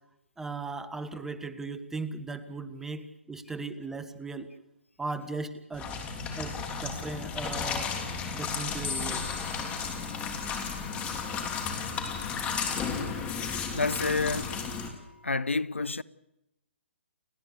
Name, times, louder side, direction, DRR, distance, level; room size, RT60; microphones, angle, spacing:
voice 1, 0.4-4.5 5.0-5.9 6.4-7.9 8.3-9.2, right 3 dB, 5° right, 1.3 m, -37 dB
sound 1, 5.7-14.9, left 5 dB, 20° left, 3.4 m, -33 dB
sound 2, 8.8-15.3, left 5 dB, 65° left, 2.4 m, -45 dB
voice 2, 13.7-14.6 15.2-16.0, left 3 dB, 85° left, 0.7 m, -29 dB
30.0 x 10.5 x 9.8 m
figure-of-eight pair, 130°, 7 cm